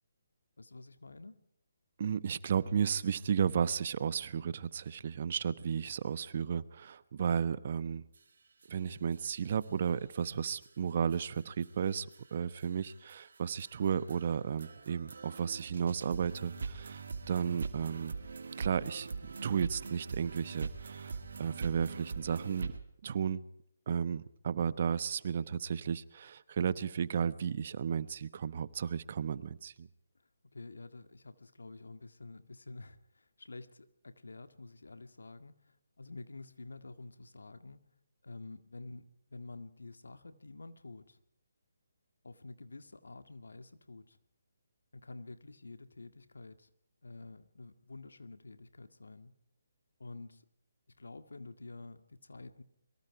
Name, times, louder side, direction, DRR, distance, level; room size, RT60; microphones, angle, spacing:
voice 1, 0.6-1.4 30.1-37.8 38.2-41.2 42.2-44.2 44.9-46.7 47.0-49.3 50.0-50.5 50.9-52.6, left 3 dB, 80° left, 10 dB, 1.8 m, -49 dB
voice 2, 2.0-8.0 8.7-18.1 18.6-19.1 19.4-22.7 23.0-23.4 23.9-29.9, right 7 dB, 50° right, 16 dB, 1.0 m, -33 dB
sound 1, 8.1-8.2 8.6-8.7 9.1-9.2 9.6-9.7 10.1-10.2 10.6-10.7 11.1-22.8, right 4 dB, 70° right, 2.4 m, -42 dB
23.5 x 23.0 x 4.8 m, 0.73 s
figure-of-eight pair, 150°, 0 cm